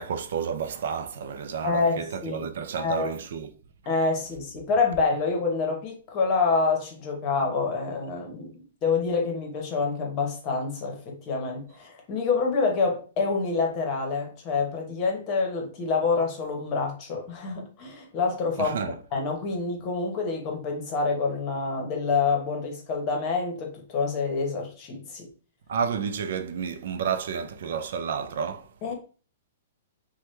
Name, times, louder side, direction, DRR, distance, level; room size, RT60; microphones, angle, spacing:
voice 1, 0.0-3.5 18.6-19.0 25.7-28.7, right 7 dB, 65° right, 0.4 m, -31 dB
voice 2, 1.6-2.5 2.8-3.1 3.9-8.5 8.8-18.8 19.1-25.3 28.8-28.9, left 4 dB, 30° left, 0.9 m, -27 dB
3.0 x 2.2 x 3.2 m
hypercardioid pair, 150°, 0 cm